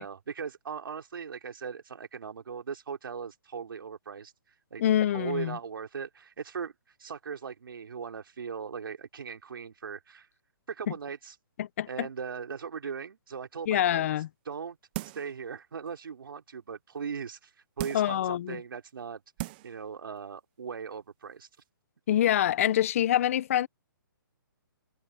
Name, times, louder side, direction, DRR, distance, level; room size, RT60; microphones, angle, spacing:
voice 1, 0.0-4.3 4.7-4.8 5.1-6.7 7.0-10.3 10.7-11.3 11.9-14.8 15.1-17.5 17.8-19.2 19.6-21.5, right 6 dB, 75° right, 4.7 m, -39 dB
voice 2, 4.8-5.6 11.6-12.1 13.7-14.3 17.9-18.6 22.1-23.7, left 11 dB, 40° left, 0.6 m, -25 dB
sound 1, 14.9-15.4 15.9-16.0 17.8-18.2 18.9-19.0 19.4-19.8 20.2-20.3, right 19 dB, 25° right, 0.6 m, -38 dB
hypercardioid pair, 160°, 12 cm